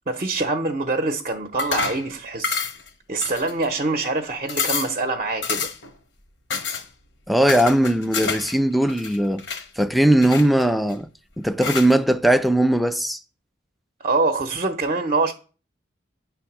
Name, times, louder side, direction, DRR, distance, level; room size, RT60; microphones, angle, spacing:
voice 1, 0.1-2.6 3.1-5.7 14.0-15.3, right 3 dB, 40° right, 0.6 m, -24 dB
sound 1, 1.6-2.1 2.4-2.9 3.2-3.8 4.2-4.3 4.5-5.0 5.4-5.9 6.5-6.8 7.5-8.5 8.8-9.6 10.2-10.9 11.6-11.9, left 5 dB, 90° left, 1.0 m, -28 dB
voice 2, 7.3-9.4 9.8-11.1 11.4-13.2, right 1 dB, ahead, 0.3 m, -19 dB
9.2 x 3.5 x 5.9 m
head